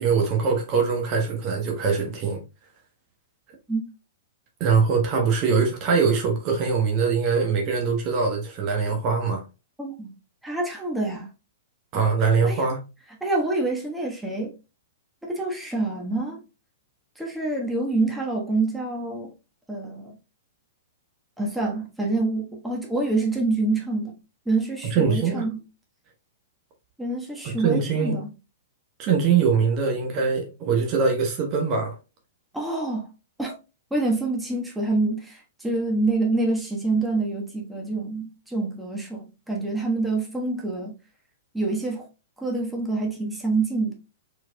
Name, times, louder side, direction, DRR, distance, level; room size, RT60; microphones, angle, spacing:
voice 1, 0.0-2.4 4.6-9.4 11.9-12.8 24.9-25.5 27.4-28.2 29.0-31.9, right 5 dB, 35° right, 1.1 m, -22 dB
voice 2, 9.8-10.1 10.4-11.3 12.4-12.7 13.2-14.5 15.2-16.4 17.2-19.3 19.7-20.2 21.4-24.1 24.4-25.6 27.0-28.3 32.5-33.1 33.4-33.5 33.9-41.0 41.5-42.1 42.4-43.9, right 2 dB, 5° right, 1.3 m, -26 dB
4.6 x 4.3 x 2.2 m
figure-of-eight pair, 105°, 0 cm